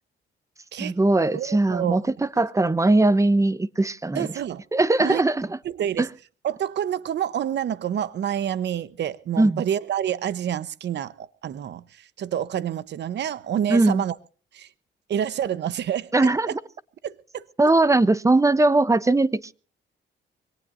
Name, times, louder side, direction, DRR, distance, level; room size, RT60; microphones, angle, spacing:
voice 1, 0.8-4.3 4.7-5.6 6.0-6.1 9.4-9.6 13.7-14.0 16.1-16.5 17.6-19.5, right 2 dB, 15° right, 0.9 m, -20 dB
voice 2, 1.3-2.0 4.1-4.6 5.0-5.2 5.6-6.1 6.4-14.1 14.5-14.7 15.1-16.1 16.5-16.6 17.0-17.4, right 10 dB, 60° right, 1.0 m, -28 dB
25.0 x 18.5 x 2.6 m
cardioid pair, 90°, 20 cm